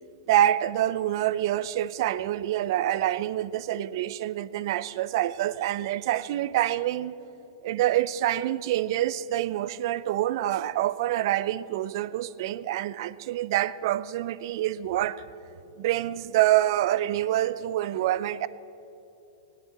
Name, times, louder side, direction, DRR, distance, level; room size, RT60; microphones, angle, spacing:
voice 1, 0.3-7.2 7.6-15.2 15.8-18.5, right 13 dB, 60° right, 0.5 m, -26 dB
17.5 x 8.6 x 8.5 m
hypercardioid pair, 115°, 3 cm